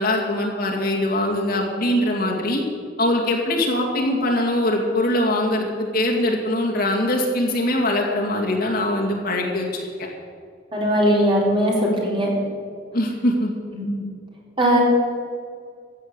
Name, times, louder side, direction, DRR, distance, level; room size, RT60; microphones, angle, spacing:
voice 1, 0.0-2.6 3.0-9.7 12.9-13.5, left 1 dB, 55° left, -1 dB, 2.5 m, -22 dB
voice 2, 10.7-12.3 13.7-13.9 14.6-14.8, equal, 30° right, -3 dB, 3.8 m, -19 dB
14.5 x 8.3 x 8.2 m, 2.1 s
head